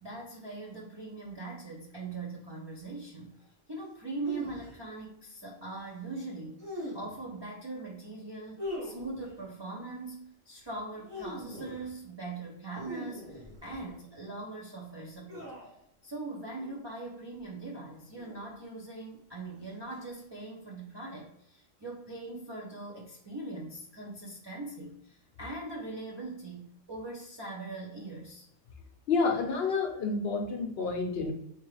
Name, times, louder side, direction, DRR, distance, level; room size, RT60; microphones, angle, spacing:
voice 1, 0.0-3.3 3.7-15.5 16.0-28.5, right 2 dB, 40° right, -4 dB, 0.3 m, -41 dB
sound 1, 4.2-4.7 6.6-7.2 8.6-9.4 10.9-11.9 12.7-13.9 15.3-15.8 16.6-16.9 18.1-18.7 19.9-20.2, equal, 85° right, 1.9 m, -42 dB
voice 2, 29.1-31.3, left 4 dB, 60° left, 3 dB, 0.7 m, -29 dB
3.6 x 3.0 x 3.1 m, 0.75 s
omnidirectional pair, 1.3 m